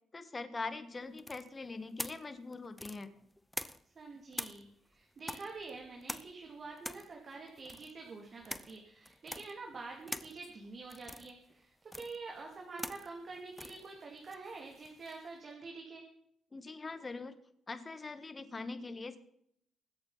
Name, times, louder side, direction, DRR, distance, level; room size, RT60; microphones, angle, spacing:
voice 1, 0.1-3.1 16.5-17.3 17.7-19.2, left 3 dB, 25° left, 10 dB, 1.5 m, -42 dB
sound 1, 1.2-4.0 4.3-15.3, left 1 dB, 5° left, 0.7 m, -46 dB
voice 2, 3.9-16.0, right 3 dB, 45° right, 0 dB, 2.6 m, -47 dB
24.0 x 8.1 x 4.1 m, 0.72 s
cardioid pair, 90°, 0 cm